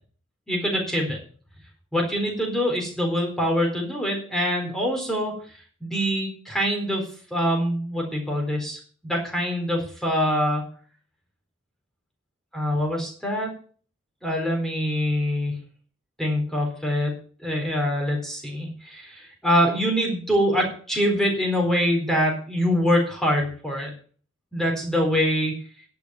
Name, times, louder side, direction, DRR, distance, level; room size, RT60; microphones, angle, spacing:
voice 1, 0.5-1.2 1.9-5.3 5.8-7.0 7.3-10.7 12.5-13.5 14.2-15.5 16.2-17.1 17.4-23.9 24.5-25.5, equal, ahead, 0 dB, 4.1 m, -24 dB
11.0 x 7.1 x 7.2 m, 0.43 s
head